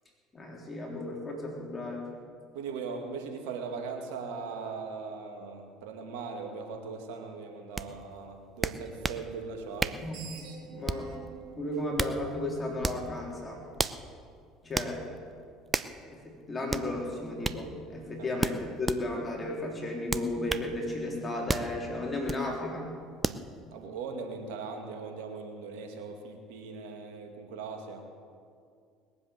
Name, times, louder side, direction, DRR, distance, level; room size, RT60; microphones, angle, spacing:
voice 1, 0.3-2.1 10.0-10.2 10.7-11.2 11.6-13.6 14.6-15.1 16.1-22.9 23.7-23.8, left 1 dB, 25° left, -2 dB, 3.5 m, -34 dB
voice 2, 2.5-10.0 18.2-18.3 23.7-28.0, right 5 dB, 75° right, 3 dB, 2.2 m, -39 dB
sound 1, 7.8-7.9 8.6-9.2 9.8-10.1 10.9-11.2 11.7-12.2 12.8-13.1 13.8-14.0 14.8-14.9 15.7-16.0 16.7-16.9 17.4-17.6 18.4-19.0 20.1-20.7 21.5-21.7 22.3-22.4 23.2-23.4, right 3 dB, 20° right, 0.7 m, -31 dB
Screech, 9.9-13.0, right 5 dB, 60° right, 2.7 m, -48 dB
20.5 x 7.8 x 8.3 m, 2.3 s
hypercardioid pair, 75°, 0 cm